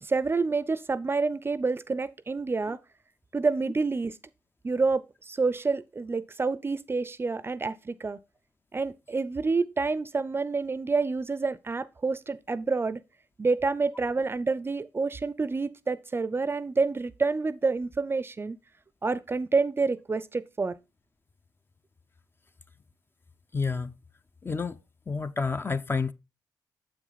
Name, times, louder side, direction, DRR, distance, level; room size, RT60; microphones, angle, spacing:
voice 1, 0.0-2.8 3.3-4.1 4.6-8.2 8.7-13.0 13.4-18.6 19.0-20.7, right 4 dB, 30° right, 0.5 m, -28 dB
voice 2, 23.5-23.9 24.4-24.8 25.1-26.1, left 4 dB, 30° left, 0.5 m, -29 dB
7.2 x 6.2 x 4.0 m
cardioid pair, 60°, 8 cm